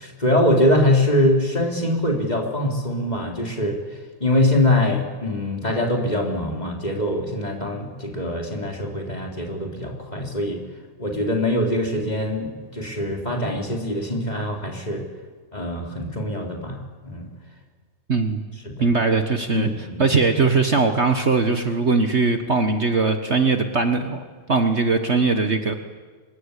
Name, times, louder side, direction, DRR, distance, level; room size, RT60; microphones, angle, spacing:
voice 1, 0.0-10.6 11.0-15.1 15.5-17.3 18.6-18.9 19.5-20.1, left 1 dB, 15° left, 1 dB, 3.7 m, -23 dB
voice 2, 18.1-18.4 18.8-19.7 20.0-24.2 24.5-25.7, right 4 dB, 80° right, 7 dB, 0.6 m, -20 dB
25.0 x 22.0 x 9.9 m, 1.5 s
omnidirectional pair, 3.4 m